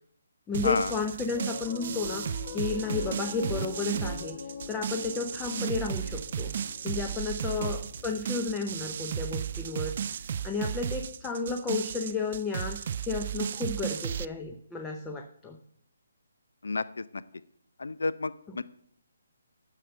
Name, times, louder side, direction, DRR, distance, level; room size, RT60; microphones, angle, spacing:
voice 1, 0.5-6.5 6.8-9.9 10.4-15.6 18.5-18.6, left 4 dB, 10° left, 4 dB, 0.6 m, -33 dB
sound 1, 0.5-14.3, right 8 dB, 40° right, 0.3 m, -34 dB
Piano, 1.3-11.8, left 7 dB, 40° left, 1.0 m, -44 dB
voice 2, 17.8-18.6, left 3 dB, 85° left, 16 dB, 0.6 m, -29 dB
9.8 x 6.7 x 7.9 m, 0.65 s
hypercardioid pair, 170°, 0 cm